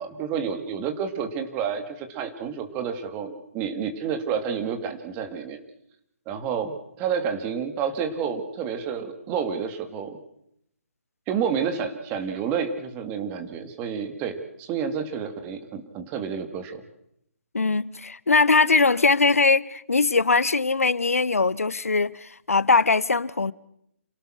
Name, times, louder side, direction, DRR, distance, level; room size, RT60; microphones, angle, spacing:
voice 1, 0.0-5.6 6.3-10.2 11.3-16.8, right 7 dB, 20° right, 2.3 m, -29 dB
voice 2, 17.5-23.5, left 4 dB, 80° left, 0.8 m, -21 dB
28.0 x 17.5 x 6.4 m
figure-of-eight pair, 140°, 8 cm